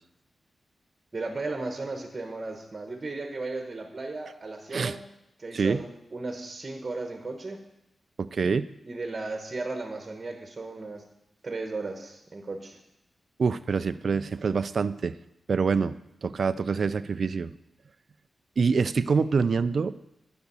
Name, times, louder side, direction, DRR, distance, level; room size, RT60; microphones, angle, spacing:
voice 1, 1.1-5.0 5.4-7.6 8.8-11.0 11.4-12.8, right 3 dB, 30° right, 3 dB, 1.1 m, -35 dB
voice 2, 8.2-8.7 13.4-15.2 15.5-17.5 18.6-19.9, right 5 dB, 55° right, 13 dB, 0.3 m, -26 dB
10.5 x 5.1 x 6.9 m, 0.84 s
wide cardioid pair, 130°, 0 cm